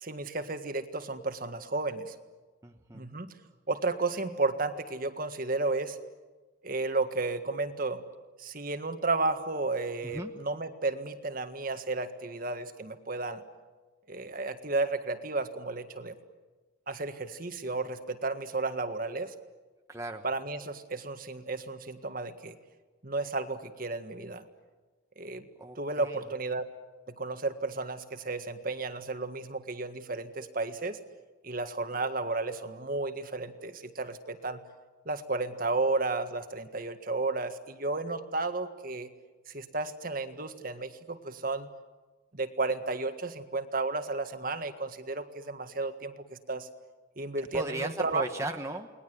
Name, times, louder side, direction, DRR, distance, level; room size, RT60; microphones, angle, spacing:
voice 1, 0.0-2.1 2.9-3.4 3.7-6.0 6.6-8.0 8.4-13.4 14.1-16.2 16.9-19.3 20.2-22.6 23.0-24.5 25.2-25.5 25.8-26.6 27.1-31.0 31.4-34.6 35.1-39.1 39.5-41.7 42.3-46.7 47.2-48.2, right 3 dB, 45° right, 8 dB, 1.8 m, -33 dB
voice 2, 2.6-3.1 10.0-10.3 19.9-20.2 25.6-26.2 47.5-48.9, right 2 dB, 15° right, 4 dB, 1.2 m, -37 dB
29.5 x 20.5 x 9.5 m, 1.3 s
head